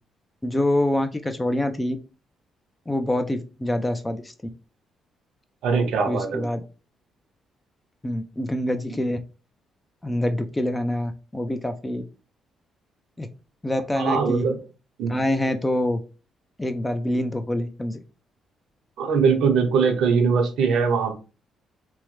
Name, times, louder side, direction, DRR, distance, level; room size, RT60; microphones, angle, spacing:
voice 1, 0.4-2.0 2.9-4.3 5.7-6.6 8.0-9.2 10.0-12.0 13.2-13.3 13.6-14.4 15.1-16.0 16.6-18.0, left 1 dB, 15° left, 8 dB, 0.3 m, -26 dB
voice 2, 5.6-6.4 14.0-14.6 15.0-15.2 19.0-21.1, right 5 dB, 80° right, 6 dB, 0.7 m, -21 dB
3.1 x 2.0 x 3.0 m, 0.32 s
cardioid pair, 90°, 0 cm